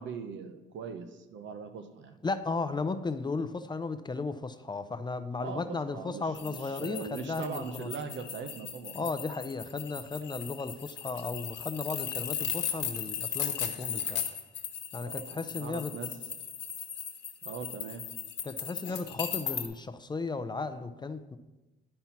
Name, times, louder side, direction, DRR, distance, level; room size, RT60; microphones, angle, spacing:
voice 1, 0.0-2.2 5.4-9.2 15.0-16.2 17.4-18.0, right 5 dB, 70° right, 0.9 m, -41 dB
voice 2, 2.2-7.9 8.9-14.2 14.9-15.9 18.4-21.4, left 3 dB, 20° left, 0.5 m, -35 dB
sound 1, 6.3-19.7, left 8 dB, 65° left, 1.2 m, -37 dB
11.0 x 4.4 x 5.8 m
cardioid pair, 90°, 20 cm